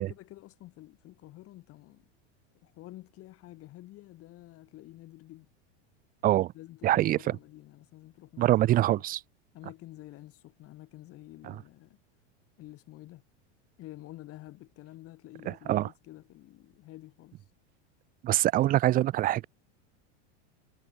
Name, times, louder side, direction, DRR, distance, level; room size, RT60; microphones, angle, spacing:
voice 1, 0.0-2.0 2.6-5.5 6.5-8.6 8.9-9.0 9.5-12.0 12.6-13.2 13.8-17.4, left 16 dB, 40° left, 2.7 m, -49 dB
voice 2, 6.8-7.4 8.4-9.2 11.4-11.6 15.5-15.9 18.2-19.5, right 14 dB, 25° right, 0.4 m, -25 dB
supercardioid pair, 125°, 34 cm